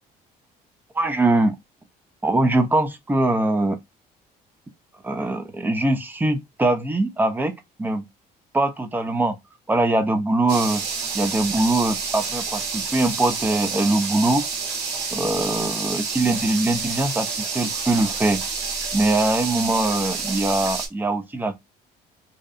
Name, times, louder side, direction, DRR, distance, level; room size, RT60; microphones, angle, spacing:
voice 1, 0.9-1.6 2.2-3.8 5.0-7.5 7.8-8.1 8.5-9.4 9.7-10.8 11.1-14.4 15.1-18.4 18.9-21.6, right 2 dB, 10° right, 0.4 m, -22 dB
sound 1, 10.5-20.9, right 5 dB, 80° right, 0.9 m, -29 dB
2.7 x 2.0 x 2.4 m
cardioid pair, 110°, 17 cm